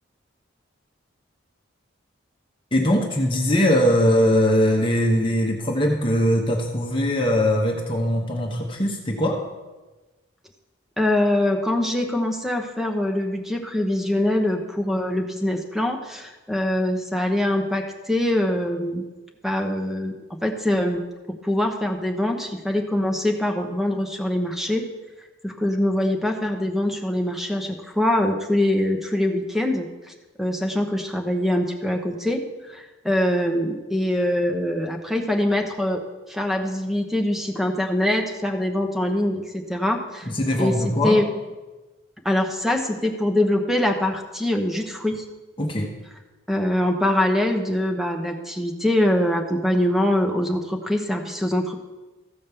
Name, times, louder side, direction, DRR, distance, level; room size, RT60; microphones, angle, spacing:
voice 1, 2.7-9.4 40.3-41.2 45.6-45.9, equal, 25° left, 0 dB, 1.0 m, -21 dB
voice 2, 11.0-19.0 19.4-20.1 20.4-21.0 21.4-24.8 25.4-36.0 36.3-40.3 40.6-41.2 42.2-45.2 46.5-51.7, left 1 dB, ahead, 3 dB, 0.9 m, -23 dB
14.5 x 5.3 x 6.8 m, 1.2 s
head